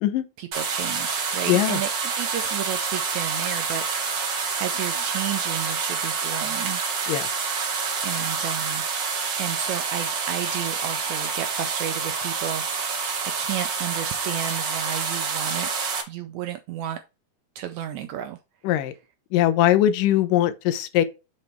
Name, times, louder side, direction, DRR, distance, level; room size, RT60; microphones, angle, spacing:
voice 1, 0.4-4.3 4.6-6.8 8.0-8.9 9.4-15.7 16.1-17.0 17.6-18.4, right 10 dB, 80° right, 1.7 m, -32 dB
sound 1, 0.5-16.0, right 5 dB, 55° right, 1.3 m, -27 dB
voice 2, 1.5-1.8 7.1-7.5 18.6-18.9 19.3-21.0, left 12 dB, 90° left, 2.3 m, -21 dB
6.8 x 4.2 x 4.4 m
omnidirectional pair, 3.9 m